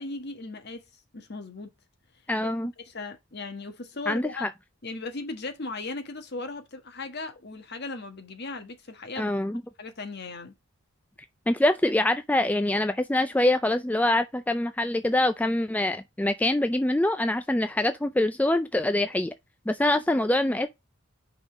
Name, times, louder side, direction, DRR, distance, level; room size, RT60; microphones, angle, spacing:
voice 1, 0.0-1.7 2.4-2.5 2.8-4.5 4.8-9.3 9.8-10.5, left 3 dB, 55° left, 1.4 m, -37 dB
voice 2, 2.3-2.7 4.1-4.5 9.2-9.6 11.5-19.3 19.7-20.7, left 1 dB, 10° left, 0.3 m, -24 dB
5.4 x 3.8 x 5.9 m
head